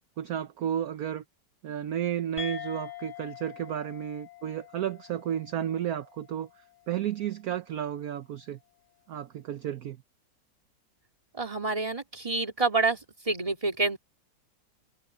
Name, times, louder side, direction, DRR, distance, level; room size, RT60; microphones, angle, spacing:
voice 1, 0.2-1.2 1.6-6.5 6.9-8.6 9.1-10.0, right 10 dB, 60° right, 1.2 m, -32 dB
sound 1, 2.4-7.3, left 9 dB, 40° right, 4.8 m, -44 dB
voice 2, 11.3-13.0 13.3-14.0, right 3 dB, 20° right, 2.3 m, -27 dB
omnidirectional pair, 1.9 m